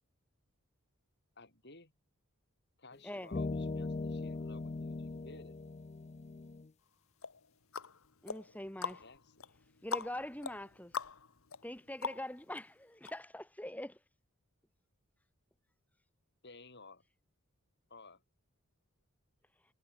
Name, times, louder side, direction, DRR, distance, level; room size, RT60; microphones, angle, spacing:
voice 1, 1.4-1.9 2.8-5.6 8.9-9.5 16.4-17.0 17.9-18.2, left 3 dB, 50° left, 7.5 m, -55 dB
sound 1, 2.9-3.0 3.3-6.7, left 3 dB, 30° left, 0.4 m, -39 dB
sound 2, 7.2-12.6 13.0-13.1, left 5 dB, 70° left, 1.3 m, -43 dB
voice 2, 8.2-9.0 9.8-10.9 11.6-14.0, left 1 dB, 5° left, 3.8 m, -43 dB
head